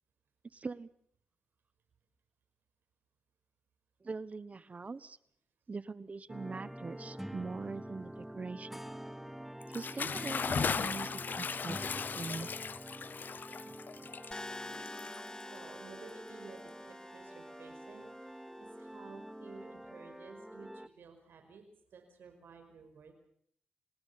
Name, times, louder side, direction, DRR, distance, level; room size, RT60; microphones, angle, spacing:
voice 1, 0.5-0.9 4.0-5.2 5.7-8.8 9.7-12.5 13.7-13.8, right 4 dB, 45° right, 17 dB, 1.3 m, -42 dB
sound 1, 6.3-20.9, equal, 5° right, 1.1 m, -47 dB
Bathtub (filling or washing) / Splash splatter, 9.6-15.6, left 6 dB, 60° left, 0.8 m, -37 dB
sound 2, 14.3-18.3, left 2 dB, 20° left, 1.0 m, -48 dB
voice 2, 15.5-21.6 21.9-23.1, right 5 dB, 85° right, 6 dB, 5.4 m, -54 dB
29.5 x 19.0 x 5.9 m, 0.65 s
cardioid pair, 70°, 3 cm